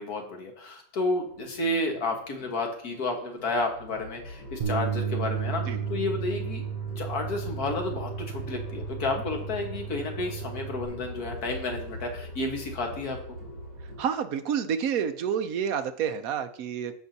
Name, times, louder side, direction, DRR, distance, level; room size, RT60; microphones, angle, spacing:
voice 1, 0.0-6.6 7.0-13.2, left 2 dB, 85° left, 2 dB, 1.9 m, -31 dB
sound 1, 1.3-14.0, equal, 50° left, 4.5 m, -41 dB
Bass guitar, 4.6-10.9, right 7 dB, 40° right, 1.0 m, -33 dB
voice 2, 14.0-16.9, right 8 dB, 75° right, 10 dB, 1.1 m, -29 dB
14.0 x 5.7 x 2.8 m, 0.64 s
omnidirectional pair, 1.6 m